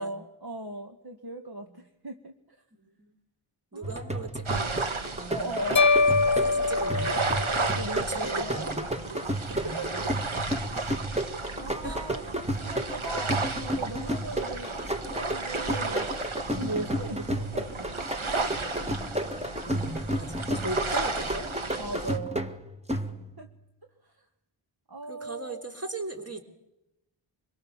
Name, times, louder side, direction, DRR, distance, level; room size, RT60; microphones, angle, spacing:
voice 1, 0.0-2.6 3.7-4.2 5.3-6.0 7.3-9.1 9.6-9.9 11.6-12.3 12.6-16.1 16.6-18.0 18.5-18.8 21.8-22.5 22.9-23.0 23.4-23.5 24.0-24.3 24.9-25.6, right 1 dB, 50° right, 4 dB, 1.8 m, -38 dB
voice 2, 2.8-3.1 3.7-4.7 5.1-5.6 6.4-7.2 8.0-8.8 9.5-10.1 10.3-10.5 11.8-12.1 16.4-16.8 19.6-21.5 23.0-23.3 25.1-26.4, right 1 dB, 30° right, 3 dB, 3.5 m, -39 dB
sound 1, 3.8-23.5, right 1 dB, 15° right, 1.8 m, -33 dB
sound 2, 4.5-22.2, right 3 dB, 80° right, 1.6 m, -33 dB
sound 3, 5.8-8.0, left 4 dB, 35° left, 1.1 m, -24 dB
25.5 x 22.5 x 7.4 m, 0.92 s
wide cardioid pair, 40°, 48 cm